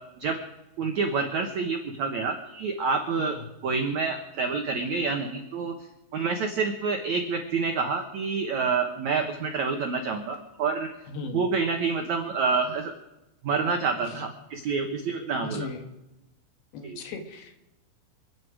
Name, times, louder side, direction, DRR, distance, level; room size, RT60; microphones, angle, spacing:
voice 1, 0.8-3.4 3.6-5.7 6.1-10.9 11.3-12.9 13.4-15.7 16.8-17.0, right 4 dB, 75° right, 4 dB, 1.7 m, -28 dB
voice 2, 3.2-3.5 11.1-11.4 14.0-14.3 15.4-15.9 16.7-17.6, left 4 dB, 65° left, 5 dB, 3.2 m, -38 dB
28.5 x 10.0 x 5.0 m, 0.98 s
omnidirectional pair, 5.2 m